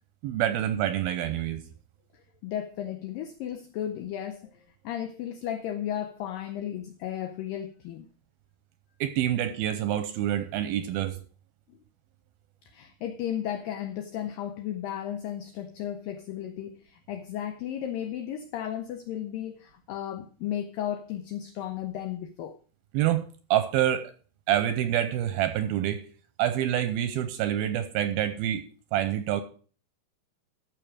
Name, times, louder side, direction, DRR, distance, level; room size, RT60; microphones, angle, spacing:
voice 1, 0.2-1.6 9.0-11.2 22.9-23.3 23.5-24.1 24.5-26.0 26.4-29.4, right 11 dB, 80° right, 2.3 m, -27 dB
voice 2, 2.1-8.1 11.7-11.8 12.6-22.6, left 10 dB, 85° left, 1.9 m, -34 dB
14.0 x 6.0 x 4.9 m
omnidirectional pair, 4.8 m